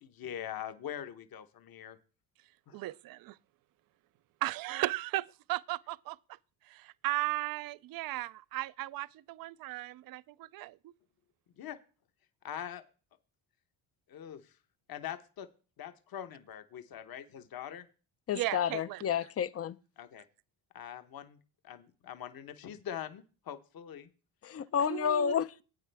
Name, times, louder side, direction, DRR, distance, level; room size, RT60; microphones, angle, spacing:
voice 1, 0.0-2.0 2.7-2.8 11.6-11.8 12.4-12.8 14.1-14.5 14.9-15.5 15.8-17.9 20.0-20.2 20.7-21.4 21.6-24.1, left 10 dB, 45° left, 1.0 m, -43 dB
voice 2, 2.7-3.4 4.4-6.2 6.7-10.9 18.3-19.0 24.8-25.4, right 18 dB, 50° right, 0.4 m, -36 dB
voice 3, 18.3-19.8 24.4-25.6, left 8 dB, 30° left, 0.5 m, -30 dB
13.0 x 8.5 x 3.4 m
supercardioid pair, 85°, 48 cm